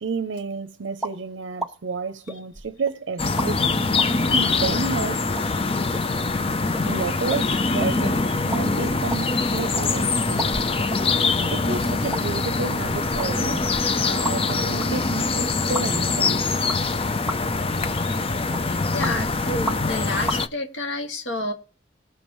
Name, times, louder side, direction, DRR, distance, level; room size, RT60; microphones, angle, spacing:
voice 1, 0.0-3.8 4.3-5.3 6.9-10.5 11.5-13.7 14.0-16.4, right 4 dB, 80° right, 0.6 m, -31 dB
sound 1, 1.0-1.2 1.6-1.7 2.3-2.9 3.4-3.5 4.0-4.1 4.8-4.9 5.4-5.5 5.9-6.1 6.3-6.4 6.7-6.9 7.3-7.4 7.8-8.0 8.3-8.6 8.9-9.9 10.4-11.0 11.4-11.5 12.1-12.2 12.7-14.5 14.8-14.9 15.7-15.9 16.7-17.0 17.3-17.6 18.0-18.2 18.5-19.1 19.7-20.0 20.3-20.4, right 1 dB, ahead, 1.3 m, -32 dB
sound 2, 3.2-20.5, left 3 dB, 30° left, 0.6 m, -23 dB
voice 2, 18.9-21.5, left 1 dB, 80° left, 2.2 m, -29 dB
19.5 x 7.1 x 3.1 m
head